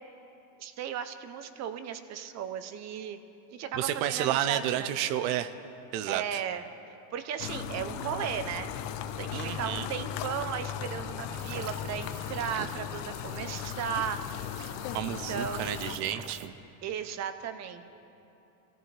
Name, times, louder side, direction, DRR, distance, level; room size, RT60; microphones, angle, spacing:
voice 1, 0.6-3.2 3.5-4.9 6.1-6.6 7.1-8.7 9.2-14.2 15.0-15.8 16.8-17.9, right 8 dB, 35° right, 10 dB, 0.8 m, -36 dB
voice 2, 3.8-5.5 5.9-6.4 9.3-9.9 14.9-16.5, right 11 dB, 65° right, 12 dB, 0.9 m, -31 dB
sound 1, 7.4-16.0, left 9 dB, 85° left, 1.0 m, -37 dB
sound 2, 11.3-16.5, right 10 dB, 90° right, 0.9 m, -47 dB
24.5 x 15.0 x 3.4 m, 2.9 s
supercardioid pair, 145°, 48 cm